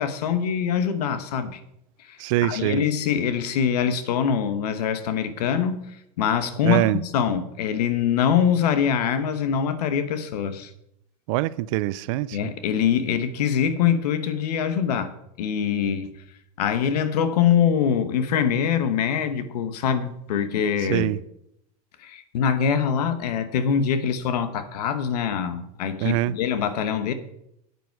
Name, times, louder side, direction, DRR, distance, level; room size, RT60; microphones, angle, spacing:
voice 1, 0.0-1.6 2.0-5.9 6.2-6.8 7.1-10.7 12.3-16.1 16.6-21.1 22.0-27.1, left 8 dB, 85° left, 1.1 m, -24 dB
voice 2, 2.2-2.8 6.6-7.0 11.3-12.5 20.8-21.2 26.0-26.4, right 16 dB, 55° right, 0.4 m, -24 dB
9.2 x 8.2 x 4.6 m
supercardioid pair, 145°, 20 cm